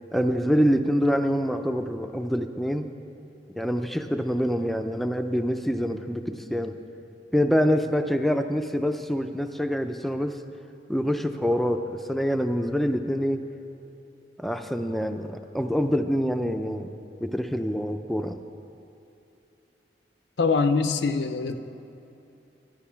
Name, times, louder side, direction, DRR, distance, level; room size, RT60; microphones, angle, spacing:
voice 1, 0.1-2.9 3.6-6.7 7.3-10.4 10.9-13.4 14.4-16.9 17.2-18.4 21.5-21.6, equal, ahead, 7 dB, 0.4 m, -25 dB
voice 2, 20.4-21.6, left 4 dB, 75° left, 9 dB, 0.5 m, -23 dB
10.5 x 10.5 x 5.7 m, 2.8 s
head